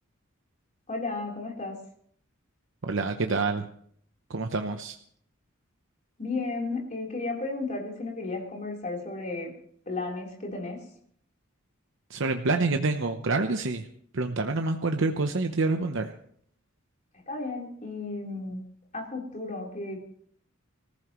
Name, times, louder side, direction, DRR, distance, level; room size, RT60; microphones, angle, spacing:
voice 1, 0.9-1.8 6.2-9.5 9.9-10.8 17.3-18.6 18.9-20.0, left 3 dB, 35° left, -1 dB, 3.8 m, -33 dB
voice 2, 2.8-3.7 4.3-5.0 12.1-13.8 14.1-16.1, right 3 dB, 60° right, 5 dB, 0.8 m, -27 dB
25.0 x 14.5 x 3.1 m, 0.63 s
head